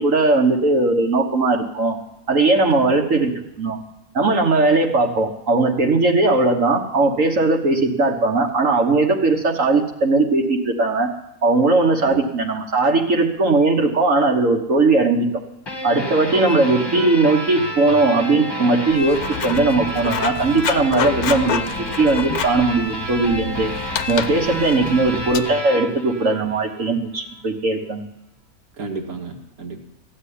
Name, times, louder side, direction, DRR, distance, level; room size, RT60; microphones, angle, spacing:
voice 1, 0.0-2.0 2.3-3.3 3.6-3.8 4.1-11.1 11.4-15.3 15.8-21.7 22.0-23.7 24.1-28.1, right 3 dB, 60° right, 2 dB, 1.7 m, -18 dB
voice 2, 2.8-3.2 12.0-12.2 16.5-16.8 24.9-25.1 28.8-29.8, right 3 dB, 80° right, 3 dB, 2.2 m, -33 dB
sound 1, 15.7-26.9, equal, 20° left, 1.3 m, -30 dB
Writing, 18.9-25.4, left 9 dB, 90° left, 1.3 m, -29 dB
15.5 x 7.9 x 10.0 m, 0.87 s
omnidirectional pair, 1.5 m